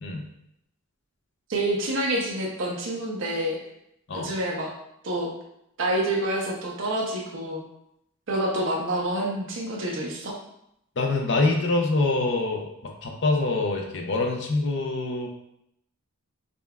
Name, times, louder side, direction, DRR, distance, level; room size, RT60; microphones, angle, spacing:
voice 1, 1.5-3.6 4.1-4.7 5.0-5.3 5.8-7.6 8.3-10.3, right 1 dB, 60° right, -2 dB, 0.6 m, -27 dB
voice 2, 11.0-15.3, left 2 dB, 55° left, 2 dB, 0.5 m, -25 dB
5.1 x 2.3 x 2.2 m, 0.78 s
head